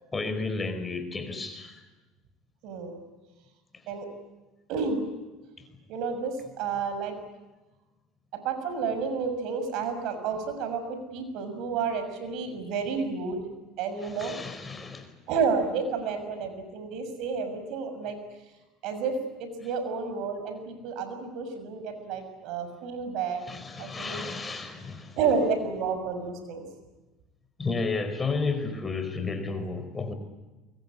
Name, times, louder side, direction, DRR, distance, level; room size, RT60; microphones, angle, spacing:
voice 1, 0.1-1.8 14.0-15.1 23.5-25.2 27.6-30.1, left 4 dB, 20° left, 9 dB, 4.7 m, -32 dB
voice 2, 2.6-3.0 3.9-4.1 4.7-5.1 5.9-7.1 8.4-13.4 13.8-14.3 15.3-18.2 18.8-23.5 23.8-24.2 25.2-26.6, right 5 dB, 65° right, 8 dB, 6.5 m, -30 dB
24.0 x 23.0 x 9.8 m, 1.1 s
supercardioid pair, 110°, 0 cm